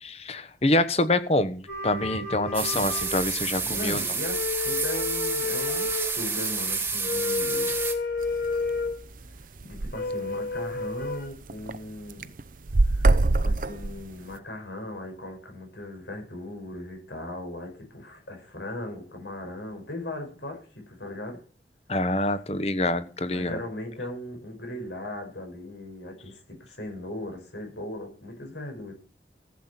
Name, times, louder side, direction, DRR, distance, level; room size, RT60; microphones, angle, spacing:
voice 1, 0.0-4.0 21.9-23.6, left 2 dB, 35° left, 12 dB, 1.1 m, -26 dB
sound 1, 1.7-3.7 4.1-6.2 7.0-9.0 9.9-11.3, left 4 dB, 55° left, 5.3 m, -31 dB
sound 2, 2.5-7.9, right 5 dB, 15° right, 1.6 m, -29 dB
voice 2, 3.6-7.8 9.3-12.3 12.9-13.1 13.4-21.4 23.3-28.9, left 1 dB, 90° left, 3 dB, 5.7 m, -38 dB
sound 3, 8.2-8.5 8.9-9.0 9.2-9.3 9.6-10.0 10.6-10.7 11.0-11.8 12.1-14.3, right 2 dB, 50° right, 0.6 m, -23 dB
15.0 x 8.2 x 5.9 m, 0.40 s
head